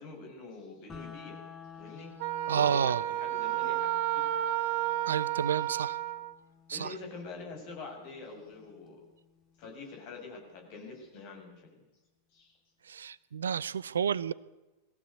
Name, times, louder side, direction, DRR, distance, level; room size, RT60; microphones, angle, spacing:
voice 1, 0.0-1.4 1.7-2.1 2.5-4.3 4.9-5.0 6.7-9.0 9.6-11.9 12.3-12.6, left 4 dB, 45° left, 2 dB, 7.4 m, -45 dB
sound 1, 0.9-10.9, left 6 dB, 20° left, 2.6 m, -53 dB
Wind instrument woodwind instrument, 2.2-6.3, right 13 dB, 50° right, 1.3 m, -31 dB
voice 2, 2.5-3.0 5.1-6.0 6.7-6.9 12.8-14.3, right 7 dB, 70° right, 18 dB, 0.7 m, -30 dB
21.5 x 16.0 x 8.3 m, 1.0 s
figure-of-eight pair, 90°, 0 cm